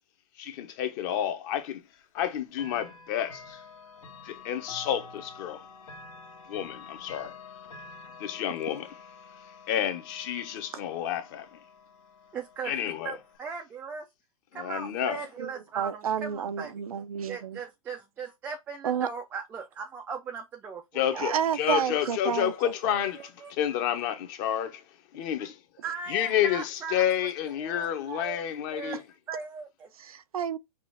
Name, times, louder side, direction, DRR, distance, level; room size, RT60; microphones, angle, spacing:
voice 1, 0.4-1.8 2.1-3.6 4.2-5.6 6.5-7.3 8.2-8.9 9.7-11.5 12.6-13.2 14.5-15.2 20.9-24.8 25.1-25.5 26.1-29.0, left 10 dB, 35° left, 0.9 m, -30 dB
Chime / Clock, 2.5-13.4, left 4 dB, 75° left, 1.5 m, -48 dB
voice 2, 12.3-14.1 14.5-16.7 17.3-21.8 22.9-23.5 25.8-27.0 27.6-28.4 28.7-29.0 29.3-29.9, right 6 dB, 10° right, 0.3 m, -39 dB
voice 3, 15.4-17.6 18.8-19.1 21.1-23.0 28.9-29.0 30.0-30.6, right 8 dB, 85° right, 0.6 m, -31 dB
6.0 x 2.5 x 3.2 m
hypercardioid pair, 150°, 18 cm